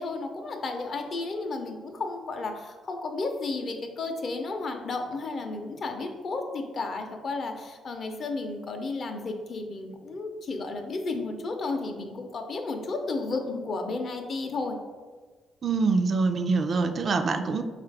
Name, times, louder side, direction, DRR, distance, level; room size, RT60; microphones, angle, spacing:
voice 1, 0.0-14.8, left 3 dB, 50° left, 4 dB, 0.6 m, -33 dB
voice 2, 15.6-17.6, right 4 dB, 45° right, 7 dB, 0.3 m, -25 dB
4.0 x 2.4 x 4.5 m, 1.4 s
cardioid pair, 90°, 0 cm